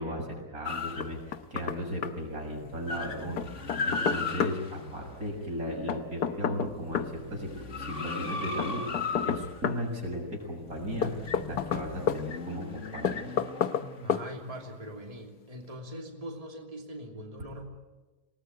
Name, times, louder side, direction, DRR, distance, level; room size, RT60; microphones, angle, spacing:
voice 1, 0.0-11.1 11.5-13.3, equal, 65° right, 0 dB, 7.4 m, -36 dB
sound 1, 0.6-1.7 2.0-2.1 2.4-6.0 6.5-15.0, left 3 dB, 50° left, 2.1 m, -37 dB
Knock, 1.0-1.8 2.0-2.1 3.4-4.6 5.9-7.1 8.6-9.8 11.0-12.2 13.0-13.8 14.1-14.3, left 7 dB, 80° left, 1.6 m, -29 dB
voice 2, 14.0-17.7, equal, 20° right, 1 dB, 2.9 m, -42 dB
28.0 x 19.5 x 9.6 m, 1.2 s
omnidirectional pair, 1.6 m